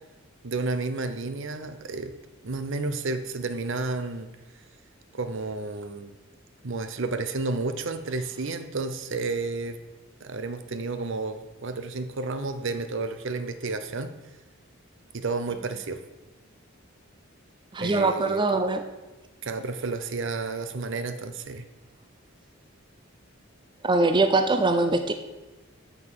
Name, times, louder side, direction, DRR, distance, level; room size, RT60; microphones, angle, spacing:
voice 1, 0.4-2.1 2.4-4.3 5.1-6.1 6.6-9.8 10.2-14.1 15.1-16.0 17.8-18.5 19.4-21.7, right 3 dB, 65° right, 10 dB, 0.7 m, -31 dB
voice 2, 17.7-18.8 23.8-25.1, right 2 dB, 20° right, 8 dB, 0.5 m, -22 dB
7.1 x 7.0 x 6.6 m, 1.1 s
head